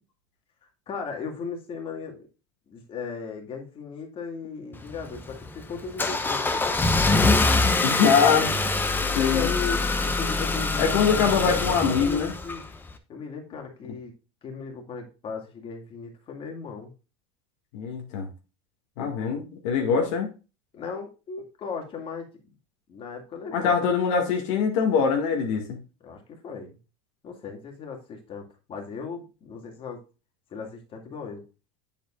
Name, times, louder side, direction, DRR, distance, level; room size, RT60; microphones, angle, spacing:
voice 1, 0.9-2.3 2.7-7.8 9.2-12.6 13.1-14.1 14.4-16.9 19.0-19.4 19.9-20.1 20.7-22.3 22.9-23.8 26.0-26.8 27.2-30.0 30.5-31.4, left 5 dB, 35° left, 2.2 m, -37 dB
Car / Engine starting, 4.7-12.9, left 3 dB, 15° left, 0.9 m, -24 dB
voice 2, 7.8-8.5 9.1-9.5 10.8-12.3 17.7-18.3 19.0-20.3 23.5-25.8, left 6 dB, 75° left, 1.9 m, -23 dB
7.8 x 7.4 x 2.4 m
supercardioid pair, 120°, 15 cm